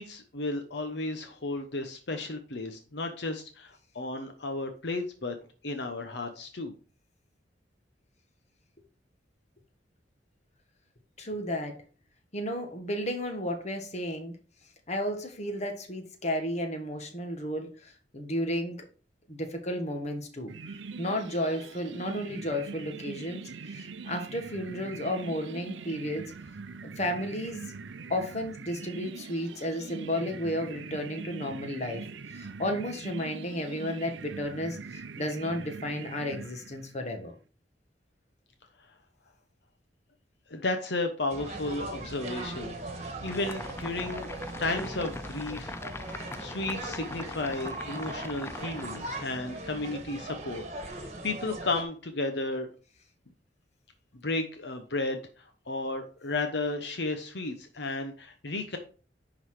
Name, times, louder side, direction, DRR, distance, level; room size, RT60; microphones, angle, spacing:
voice 1, 0.0-5.4 5.6-6.7 40.5-44.3 44.6-45.8 46.1-52.7 54.2-58.8, left 2 dB, 65° left, 5 dB, 1.0 m, -33 dB
voice 2, 11.2-11.8 12.3-14.4 14.9-18.9 19.3-26.3 26.8-27.6 28.1-37.3, equal, 40° left, 4 dB, 1.5 m, -33 dB
sound 1, 20.5-37.1, right 4 dB, 90° right, 0.6 m, -42 dB
sound 2, 41.3-51.8, right 2 dB, 35° right, 1.5 m, -39 dB
sound 3, 43.2-49.4, left 2 dB, 15° left, 0.3 m, -41 dB
10.5 x 4.0 x 4.8 m, 0.38 s
head